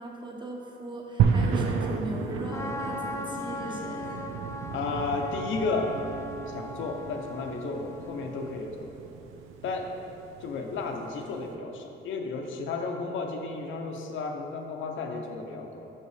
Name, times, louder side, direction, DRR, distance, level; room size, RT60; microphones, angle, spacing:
voice 1, 0.0-4.2, right 1 dB, 25° right, -2 dB, 1.2 m, -38 dB
sound 1, 1.2-11.4, right 6 dB, 80° right, 0.5 m, -33 dB
Trumpet, 2.5-8.7, left 2 dB, 15° left, 0.4 m, -39 dB
voice 2, 4.7-5.9 6.5-8.9 9.6-9.9 10.4-15.9, left 4 dB, 75° left, 3 dB, 0.8 m, -33 dB
6.0 x 5.5 x 4.9 m, 3.0 s
cardioid pair, 90°, 20 cm